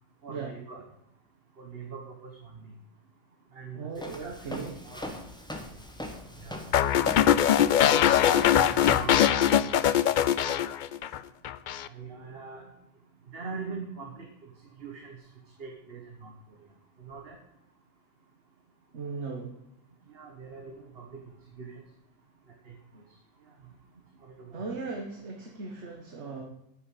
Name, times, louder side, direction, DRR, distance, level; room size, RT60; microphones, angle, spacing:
voice 1, 0.2-0.9 1.6-2.7 3.5-3.9 4.2-4.4 4.8-5.3 6.4-6.7 8.8-9.4 9.9-10.1 10.4-10.6 11.9-12.6 13.3-14.3 14.8-15.2 15.6-16.3 17.0-17.4 20.1-21.2 21.6-21.8 22.6-22.7 24.2-24.7, right 5 dB, 55° right, 2 dB, 1.5 m, -42 dB
voice 2, 3.7-4.7 18.9-19.5 24.5-26.4, right 4 dB, 70° right, 1 dB, 1.7 m, -37 dB
Walk footsteps, 4.0-9.2, left 1 dB, 5° left, 1.3 m, -40 dB
sound 1, 6.7-11.2 11.4-11.9, left 10 dB, 60° left, 0.5 m, -22 dB
9.9 x 6.6 x 8.3 m, 0.81 s
omnidirectional pair, 1.3 m